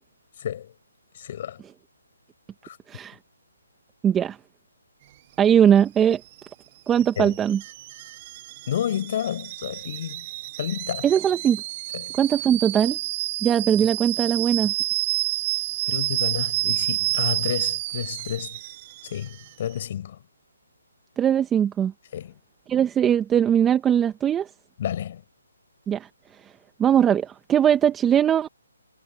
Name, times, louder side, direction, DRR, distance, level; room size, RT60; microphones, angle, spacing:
voice 1, 0.4-0.7 1.1-1.6 2.6-2.8 7.2-7.4 8.7-10.3 10.6-11.1 11.9-12.1 15.9-18.6 19.0-20.2 22.1-22.4 24.8-25.2, left 10 dB, 45° left, 4.7 m, -30 dB
voice 2, 4.0-4.4 5.4-6.2 6.9-7.6 11.0-11.6 12.2-13.0 13.4-14.7 21.2-21.9 22.7-24.5 25.9-26.1 26.8-28.5, right 9 dB, 10° right, 1.5 m, -20 dB
Alarm / Boiling, 5.0-19.9, right 16 dB, 30° right, 7.2 m, -30 dB
hypercardioid pair, 150°, 0 cm